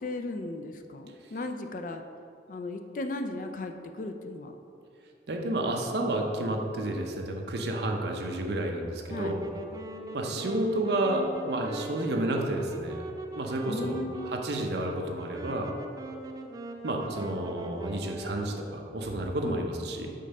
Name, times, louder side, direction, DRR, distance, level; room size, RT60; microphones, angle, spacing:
voice 1, 0.0-2.0 2.5-4.5 9.1-9.3 13.7-14.3 19.4-19.6, left 2 dB, 45° left, 6 dB, 0.4 m, -36 dB
voice 2, 5.3-9.5 10.1-13.1 13.4-14.0 14.2-15.8 16.8-20.1, right 1 dB, 70° right, 2 dB, 0.7 m, -30 dB
Wind instrument woodwind instrument, 9.0-18.7, right 2 dB, 20° right, 0.3 m, -41 dB
5.2 x 3.8 x 5.4 m, 2.5 s
head